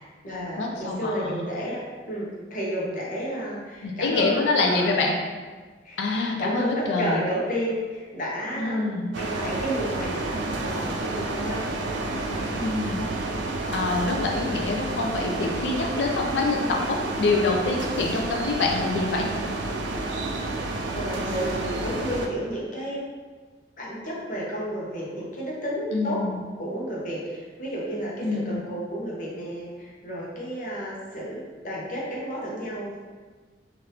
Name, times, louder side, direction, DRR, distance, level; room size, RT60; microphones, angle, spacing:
voice 1, 0.0-1.8 2.1-5.0 5.8-6.0 6.4-8.9 9.1-11.7 20.9-23.0 23.8-26.2 26.6-33.0, equal, 45° left, -5 dB, 0.8 m, -31 dB
voice 2, 0.6-1.4 3.8-5.1 6.0-7.2 8.6-9.1 12.5-13.0 13.7-19.3 25.9-26.4 28.2-28.6, left 3 dB, 80° left, 1 dB, 0.4 m, -26 dB
sound 1, 9.1-22.3, right 2 dB, 80° right, 0.4 m, -30 dB
3.3 x 2.5 x 2.8 m, 1.4 s
head